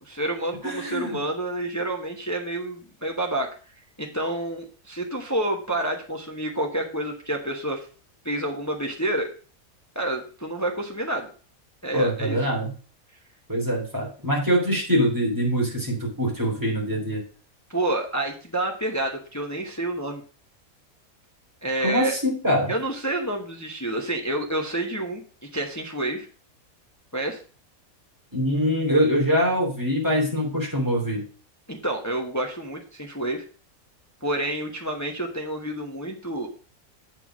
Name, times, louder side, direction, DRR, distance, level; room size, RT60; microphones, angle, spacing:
voice 1, 0.0-3.5 4.0-7.9 8.2-9.3 9.9-11.3 11.8-12.4 17.7-20.2 21.6-22.1 22.7-26.3 27.1-27.4 31.7-33.4 34.2-36.5, right 1 dB, 15° left, 2 dB, 1.0 m, -28 dB
voice 2, 0.6-1.2 11.9-12.7 13.5-17.2 21.8-22.7 28.3-31.2, equal, 15° right, -3 dB, 3.1 m, -24 dB
7.7 x 4.6 x 6.1 m, 0.38 s
omnidirectional pair, 1.5 m